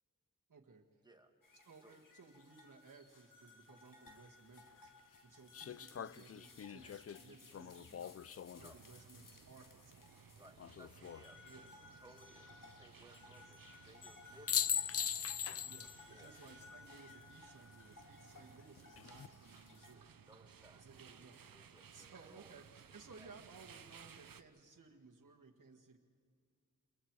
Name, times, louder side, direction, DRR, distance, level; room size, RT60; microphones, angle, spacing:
voice 1, 0.5-0.8 1.6-4.9 5.2-8.2 8.6-10.0 11.5-11.7 15.6-20.1 20.8-21.5 21.9-26.0, right 4 dB, 65° right, 0 dB, 1.7 m, -59 dB
sound 1, 1.4-19.9, left 3 dB, 70° left, 2.2 m, -61 dB
sound 2, 4.1-4.2 5.5-8.8 10.6-11.2 14.0-14.2 14.5-16.0 16.3-16.4 18.8-19.3, left 8 dB, 45° left, 0.5 m, -40 dB
sound 3, 8.5-24.4, right 7 dB, 85° right, 0.8 m, -60 dB
voice 2, 10.4-11.7 12.0-14.8 16.0-16.4 20.2-20.9 21.5-22.6 22.9-23.3, right 1 dB, 10° right, 4 dB, 2.2 m, -63 dB
28.0 x 22.0 x 4.7 m, 2.3 s
cardioid pair, 45°, 33 cm